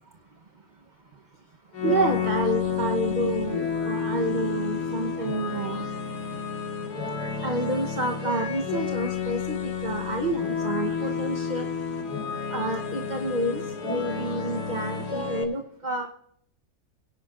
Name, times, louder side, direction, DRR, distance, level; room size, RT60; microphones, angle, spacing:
sound 1, 1.7-15.4, left 6 dB, 85° left, 2.1 m, -30 dB
voice 1, 1.8-5.8 7.4-11.7 12.5-16.1, right 2 dB, 35° right, 4 dB, 1.0 m, -29 dB
22.5 x 11.0 x 2.5 m, 0.66 s
omnidirectional pair, 1.7 m